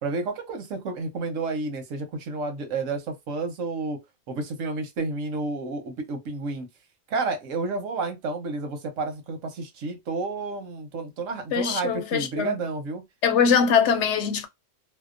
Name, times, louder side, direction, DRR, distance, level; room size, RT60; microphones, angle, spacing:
voice 1, 0.0-4.0 4.3-6.7 7.1-13.0, right 3 dB, 85° right, 1.2 m, -30 dB
voice 2, 11.5-12.6 13.2-14.5, left 6 dB, 70° left, 0.9 m, -22 dB
2.8 x 2.0 x 2.4 m
omnidirectional pair, 1.3 m